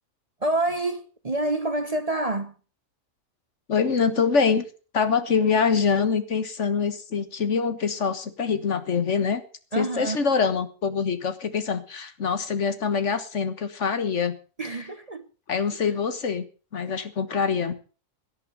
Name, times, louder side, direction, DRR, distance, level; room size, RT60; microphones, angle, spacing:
voice 1, 0.4-2.6 9.7-10.2 14.6-15.3, right 2 dB, 35° right, 0.9 m, -27 dB
voice 2, 3.7-4.7 4.9-9.4 9.8-14.4 15.5-16.4 16.7-17.7, left 5 dB, 65° left, 1.7 m, -24 dB
17.5 x 11.0 x 5.4 m
omnidirectional pair, 1.3 m